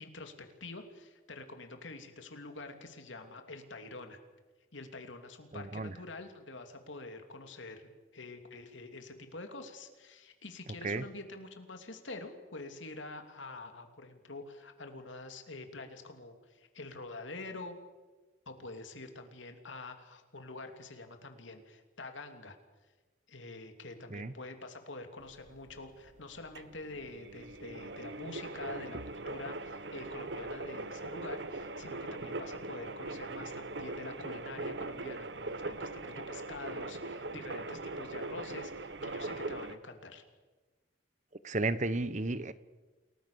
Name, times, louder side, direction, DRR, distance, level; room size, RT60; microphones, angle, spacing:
voice 1, 0.0-4.2 4.7-17.8 18.5-22.6 23.3-40.2, left 2 dB, 85° left, 6 dB, 3.1 m, -46 dB
voice 2, 5.5-5.9 10.8-11.0 24.1-24.3 41.4-42.5, right 2 dB, 40° right, 15 dB, 1.0 m, -33 dB
sound 1, 25.2-39.8, right 2 dB, 65° right, 1.1 m, -41 dB
29.0 x 19.5 x 7.0 m, 1.3 s
head